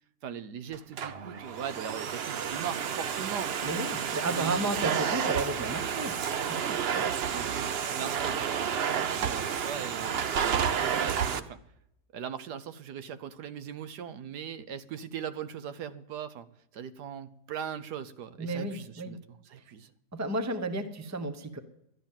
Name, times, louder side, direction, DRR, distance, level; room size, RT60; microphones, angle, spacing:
voice 1, 0.2-3.5 4.3-4.7 7.3-8.4 9.3-11.6 12.1-16.5 16.7-19.9, right 8 dB, 85° right, 13 dB, 1.4 m, -39 dB
Domestic sounds home sounds, 0.7-11.4, right 7 dB, 55° right, 0.7 m, -30 dB
voice 2, 3.6-6.2 6.5-7.0 9.2-9.4 18.4-19.2 20.1-21.6, right 2 dB, 15° right, 10 dB, 0.7 m, -33 dB
12.5 x 10.0 x 7.4 m, 0.79 s
omnidirectional pair, 1.7 m